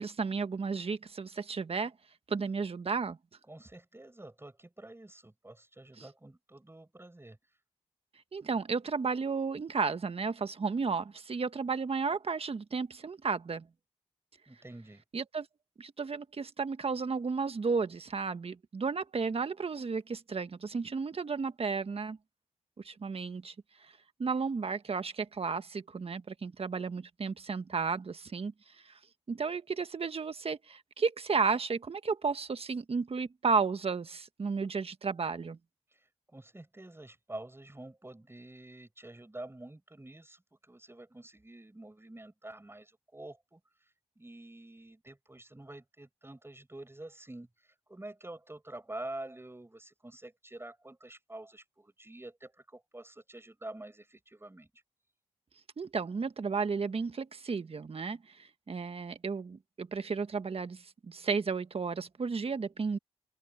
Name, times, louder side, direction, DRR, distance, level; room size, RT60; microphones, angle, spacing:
voice 1, 0.0-1.9 2.3-3.2 6.0-6.1 8.3-13.7 15.1-15.5 15.8-22.2 22.8-23.5 24.2-28.5 28.8-29.0 29.3-35.6 55.8-63.0, right 5 dB, 60° right, 1.5 m, -33 dB
voice 2, 3.5-7.4 14.5-15.0 36.3-43.6 44.2-47.5 47.9-54.7, right 1 dB, 20° right, 6.3 m, -47 dB
cardioid pair, 45°, 11 cm